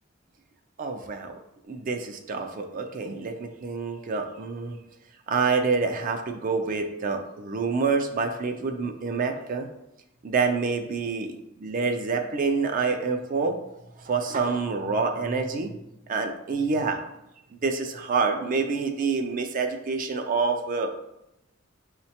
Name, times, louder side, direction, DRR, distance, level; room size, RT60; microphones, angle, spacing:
voice 1, 0.8-1.4 1.7-4.8 5.3-9.7 10.2-13.6 14.0-15.8 16.1-17.0 17.6-21.0, right 4 dB, 40° right, 5 dB, 0.3 m, -27 dB
5.5 x 2.1 x 2.8 m, 0.86 s
head